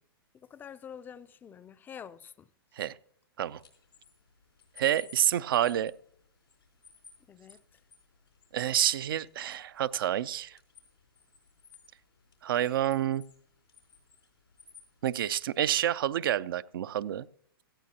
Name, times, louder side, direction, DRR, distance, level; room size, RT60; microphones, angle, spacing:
voice 1, 0.3-2.5 7.3-7.8, left 8 dB, 15° left, 0.4 m, -47 dB
sound 1, 3.4-15.8, left 5 dB, 90° left, 3.9 m, -59 dB
voice 2, 4.8-5.9 8.5-10.6 12.4-13.2 15.0-17.3, right 11 dB, 65° right, 0.4 m, -28 dB
18.0 x 14.5 x 2.8 m
hypercardioid pair, 125°, 13 cm